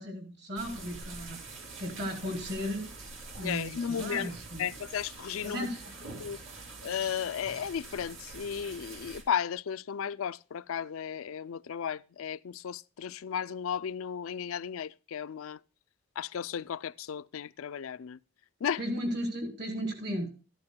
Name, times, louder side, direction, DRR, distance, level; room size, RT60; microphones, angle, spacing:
voice 1, 0.0-1.4 1.8-2.9 3.4-4.7 5.4-6.0 6.8-6.9 18.8-20.3, equal, 50° right, 3.6 m, -35 dB
sound 1, 0.6-9.2, right 3 dB, 65° right, 2.5 m, -45 dB
voice 2, 3.4-4.3 4.6-5.7 6.2-6.4 6.8-15.6 16.2-18.2 18.6-18.8, left 8 dB, 75° left, 0.4 m, -34 dB
14.0 x 11.5 x 2.2 m
head